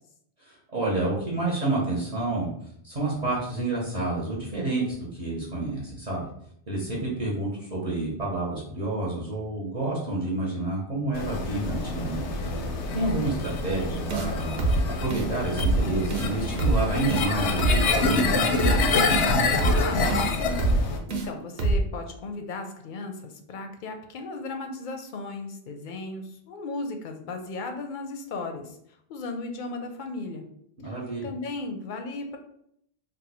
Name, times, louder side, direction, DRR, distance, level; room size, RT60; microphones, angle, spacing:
voice 1, 0.4-2.5 2.8-6.3 6.7-12.2 12.9-18.3 30.8-31.3, right 2 dB, 40° right, -6 dB, 0.9 m, -29 dB
sound 1, 11.1-21.0, left 3 dB, 90° left, 0.9 m, -26 dB
sound 2, 14.1-14.3 14.6-14.8 15.1-15.3 15.6-15.8 16.1-16.3 16.6-16.8 17.1-17.3 17.6-17.8 18.1-18.3 18.6-18.8 19.1-19.3 19.6-19.8 20.1-20.3 20.6-20.8 21.1-21.3 21.6-21.8, right 2 dB, 70° right, 0.9 m, -24 dB
voice 2, 19.7-20.7 21.1-28.8 29.1-30.5 30.8-31.0 31.2-32.4, left 3 dB, 60° left, 5 dB, 0.6 m, -36 dB
2.7 x 2.2 x 4.1 m, 0.70 s
omnidirectional pair, 1.1 m